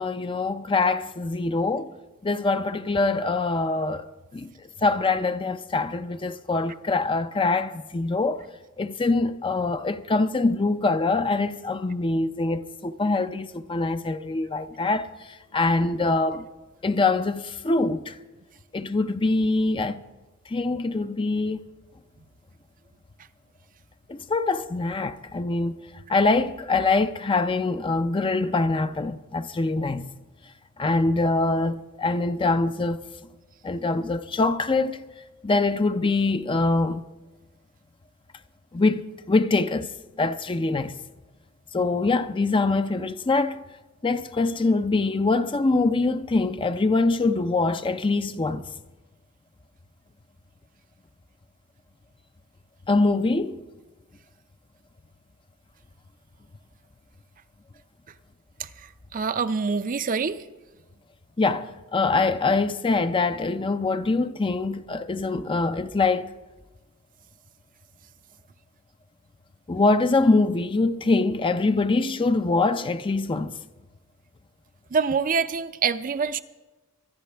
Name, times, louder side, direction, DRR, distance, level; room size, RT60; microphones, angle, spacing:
voice 1, 0.0-1.9 2.2-4.1 4.3-4.5 4.8-8.4 8.8-15.1 15.5-16.5 16.8-18.2 18.7-20.0 20.5-21.6 24.1-25.8 26.1-30.1 30.8-33.0 33.6-35.0 35.4-37.0 38.7-39.9 40.2-41.0 41.7-43.6 44.0-48.6 52.9-53.6 61.4-66.3 69.7-73.5, left 3 dB, 25° left, 0.4 m, -24 dB
voice 2, 58.6-60.4 74.9-76.4, right 5 dB, 40° right, 0.5 m, -26 dB
24.5 x 11.0 x 3.4 m
head